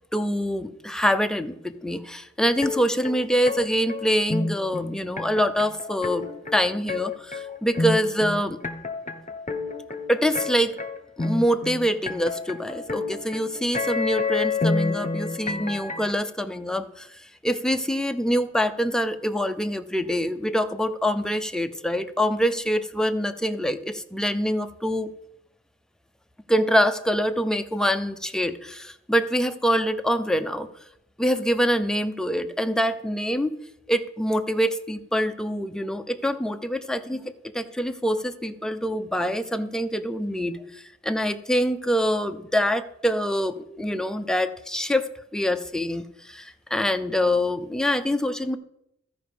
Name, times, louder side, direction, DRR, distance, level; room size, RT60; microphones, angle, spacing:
voice 1, 0.1-8.6 10.1-10.8 11.2-25.1 26.5-30.7 31.2-33.6 33.9-48.6, equal, ahead, 8 dB, 0.8 m, -25 dB
sound 1, 2.6-16.1, left 3 dB, 25° left, 1.1 m, -29 dB
13.5 x 5.2 x 5.1 m, 0.80 s
cardioid pair, 55°, 29 cm